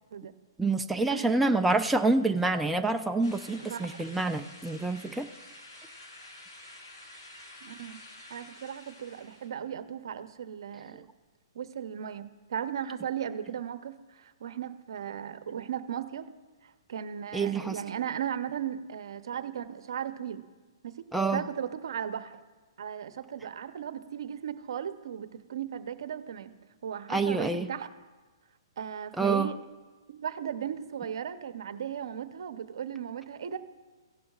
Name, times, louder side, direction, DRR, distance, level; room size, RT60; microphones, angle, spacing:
voice 1, 0.6-5.3 17.3-17.7 21.1-21.4 27.1-27.7 29.2-29.5, right 3 dB, 5° right, 4 dB, 0.3 m, -27 dB
sound 1, 3.2-9.5, left 1 dB, 90° left, 3.9 m, -49 dB
voice 2, 3.6-4.0 7.6-8.0 8.3-11.0 11.5-16.3 16.6-20.4 20.8-21.0 21.3-22.4 22.8-26.5 26.8-27.9 28.8-29.6 30.1-33.6, right 9 dB, 65° right, 11 dB, 0.7 m, -36 dB
16.0 x 11.5 x 2.4 m, 1.3 s
hypercardioid pair, 145°, 3 cm